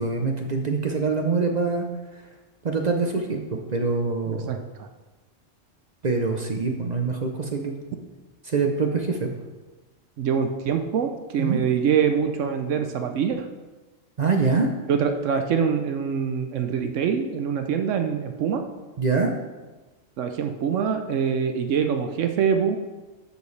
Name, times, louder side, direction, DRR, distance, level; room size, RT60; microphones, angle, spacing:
voice 1, 0.0-1.9 2.6-4.6 6.0-7.8 8.4-9.4 11.4-11.6 14.2-14.7 19.0-19.3, right 4 dB, 45° right, 3 dB, 0.6 m, -24 dB
voice 2, 4.3-4.9 10.2-13.5 14.9-18.6 20.2-22.8, right 7 dB, 75° right, 6 dB, 0.9 m, -24 dB
11.5 x 5.2 x 3.2 m, 1.2 s
omnidirectional pair, 1.3 m